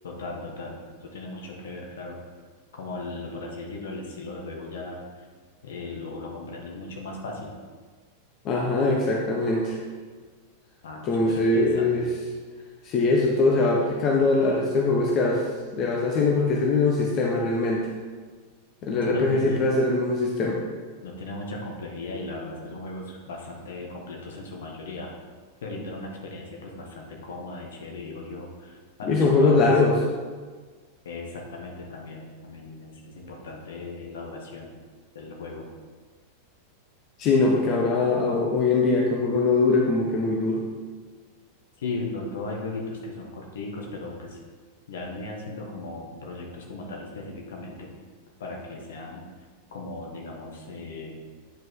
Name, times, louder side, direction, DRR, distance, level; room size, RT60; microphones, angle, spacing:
voice 1, 0.0-2.1 2.7-5.3 5.6-7.5 10.8-12.0 19.0-19.7 21.0-25.1 25.6-29.7 31.0-34.7 35.1-35.7 41.8-44.4 44.9-47.9 48.4-49.2 49.7-51.2, left 2 dB, 60° left, -1 dB, 1.5 m, -37 dB
voice 2, 8.4-9.8 11.1-12.1 12.8-15.4 15.7-17.9 18.8-20.6 29.1-30.0 37.2-40.6, left 3 dB, 35° left, -2 dB, 1.0 m, -22 dB
9.1 x 5.3 x 3.7 m, 1.5 s
figure-of-eight pair, 90°, 0 cm